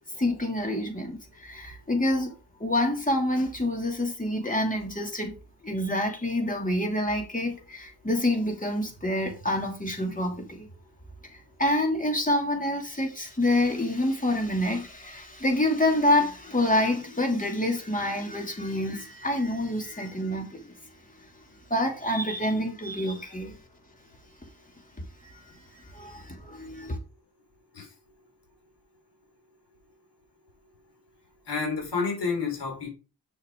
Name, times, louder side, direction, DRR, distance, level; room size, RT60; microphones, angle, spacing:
voice 1, 0.1-5.3 5.6-10.7 11.2-20.8 21.7-23.6 25.2-27.0, left 1 dB, 20° left, 2.8 m, -27 dB
voice 2, 31.5-32.9, left 4 dB, 85° left, 4.0 m, -29 dB
6.9 x 6.6 x 3.8 m
cardioid pair, 75°, 41 cm